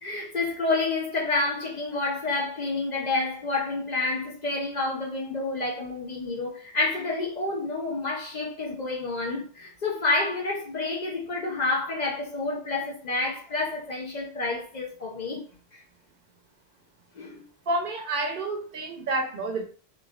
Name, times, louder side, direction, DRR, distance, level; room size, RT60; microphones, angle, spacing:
voice 1, 0.0-15.4 15.7-15.8 17.2-17.4, left 3 dB, 50° left, 0.6 m, -29 dB
voice 2, 17.7-19.6, right 2 dB, 60° right, 0.7 m, -29 dB
3.0 x 2.3 x 2.3 m
omnidirectional pair, 1.1 m